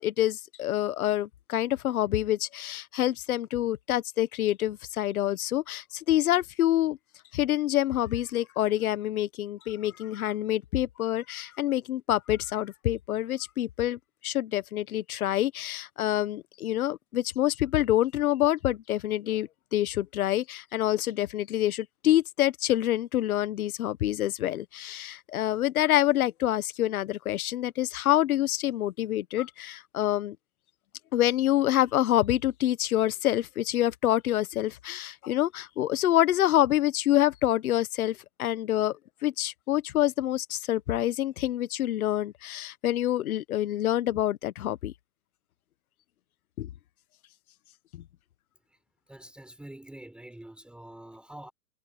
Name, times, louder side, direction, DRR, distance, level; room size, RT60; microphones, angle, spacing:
voice 1, 0.0-7.0 7.3-30.4 31.1-39.0 39.2-44.9 46.6-46.7 47.9-48.0, left 13 dB, 60° left, 1.3 m, -27 dB
voice 2, 49.1-51.5, right 1 dB, ahead, 4.5 m, -46 dB
hypercardioid pair, 155°, 48 cm